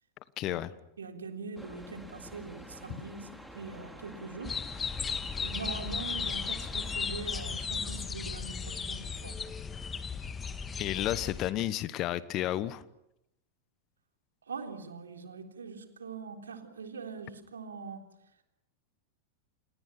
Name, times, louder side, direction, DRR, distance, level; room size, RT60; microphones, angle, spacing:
voice 1, 0.4-0.7 10.8-12.8, left 14 dB, 35° left, 17 dB, 1.2 m, -31 dB
voice 2, 1.0-9.4 14.5-18.1, right 4 dB, 70° right, 4 dB, 3.6 m, -43 dB
sound 1, 1.6-8.1, equal, ahead, 3.3 m, -49 dB
sound 2, 4.4-11.5, left 6 dB, 20° left, 1.7 m, -36 dB
30.0 x 29.5 x 5.9 m, 0.83 s
figure-of-eight pair, 90°, 0 cm